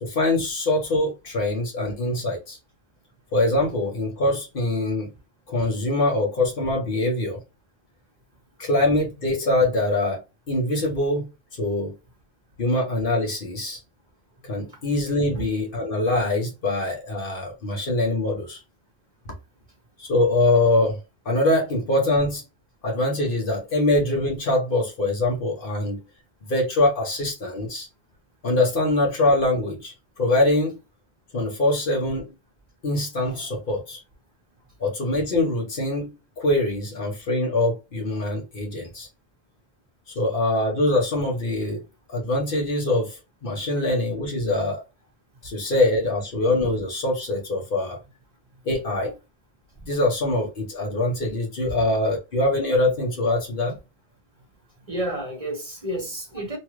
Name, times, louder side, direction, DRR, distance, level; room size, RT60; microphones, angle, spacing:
voice 1, 0.0-2.6 3.3-5.1 5.5-7.4 8.6-10.2 10.5-11.3 11.6-11.9 12.6-13.8 14.5-18.6 20.0-21.0 21.2-22.4 22.8-26.0 26.4-27.9 28.4-30.8 31.3-32.3 32.8-34.0 34.8-36.1 36.4-39.1 40.2-41.8 42.1-44.8 45.4-48.0 48.6-49.2 49.8-53.8, left 2 dB, 60° left, 1.1 m, -23 dB
voice 2, 54.9-56.6, right 1 dB, 35° right, 1.1 m, -30 dB
2.9 x 2.4 x 3.0 m
omnidirectional pair, 1.0 m